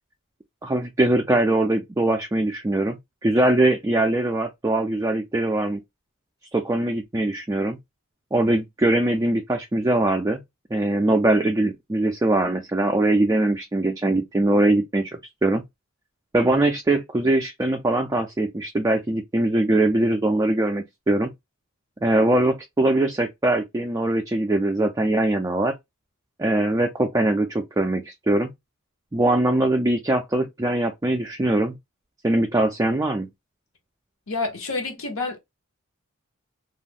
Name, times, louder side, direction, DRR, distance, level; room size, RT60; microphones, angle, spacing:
voice 1, 0.6-5.8 6.5-7.8 8.3-10.4 10.7-15.6 16.3-21.3 22.0-25.8 26.4-28.5 29.1-31.8 32.2-33.3, right 2 dB, 15° right, 0.3 m, -22 dB
voice 2, 34.3-35.4, left 3 dB, 65° left, 0.9 m, -28 dB
2.4 x 2.0 x 3.4 m
head